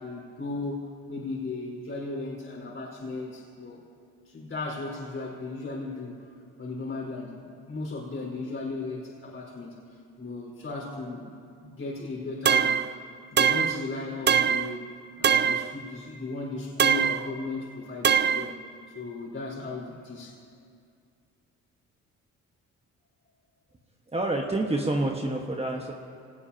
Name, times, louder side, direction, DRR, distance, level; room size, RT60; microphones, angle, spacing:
voice 1, 0.0-3.8 4.2-6.2 6.6-9.8 10.2-11.3 11.6-18.6 18.9-20.4, left 3 dB, 45° left, -4 dB, 4.8 m, -36 dB
sound 1, 12.5-12.9 13.4-13.8 14.3-14.7 15.2-15.7 16.8-17.2 18.0-18.5, right 8 dB, 35° right, 0.5 m, -22 dB
voice 2, 24.1-25.9, right 2 dB, 20° right, 0 dB, 1.4 m, -28 dB
26.0 x 19.0 x 2.9 m, 2.4 s
cardioid pair, 90°, 30 cm